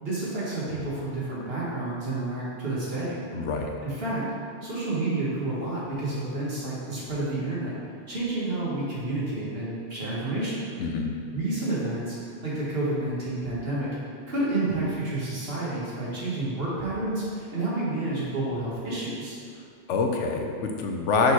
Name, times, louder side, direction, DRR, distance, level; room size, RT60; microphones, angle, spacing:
voice 1, 0.0-3.2 3.8-4.2 4.6-7.8 8.1-10.6 11.3-12.2 12.4-13.9 14.3-19.4, right 2 dB, 55° right, -7 dB, 1.9 m, -29 dB
voice 2, 3.3-3.7 10.8-11.1 19.9-21.3, left 4 dB, 85° left, 2 dB, 1.0 m, -25 dB
6.4 x 4.2 x 4.7 m, 2.2 s
omnidirectional pair, 1.2 m